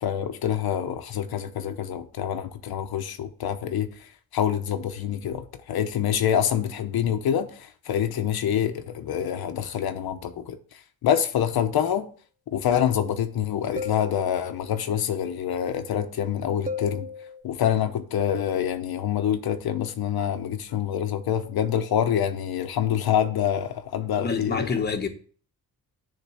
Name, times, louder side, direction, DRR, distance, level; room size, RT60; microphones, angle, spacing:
voice 1, 0.0-3.9 4.3-10.6 11.0-12.1 12.5-17.1 17.4-24.7, left 9 dB, 80° left, 0.9 m, -26 dB
sound 1, 13.8-14.8 16.7-17.4, left 4 dB, 20° right, 0.6 m, -35 dB
voice 2, 24.1-25.1, left 5 dB, 25° left, 1.1 m, -27 dB
10.0 x 3.8 x 6.9 m
wide cardioid pair, 170°, 37 cm